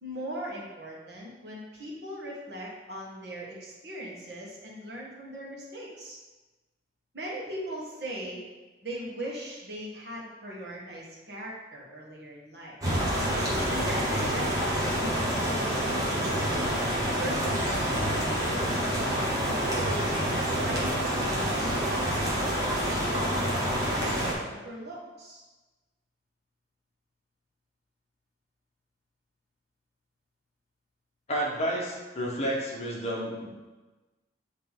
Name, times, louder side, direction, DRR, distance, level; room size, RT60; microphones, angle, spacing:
voice 1, 0.0-6.2 7.1-8.4 8.8-12.8 13.7-16.8 17.2-18.9 19.6-25.4, equal, 60° right, -4 dB, 1.5 m, -39 dB
sound 1, 12.8-24.3, equal, 20° right, 1.1 m, -27 dB
voice 2, 31.3-33.5, equal, 35° left, -2 dB, 1.0 m, -30 dB
8.1 x 3.2 x 3.5 m, 1.2 s
head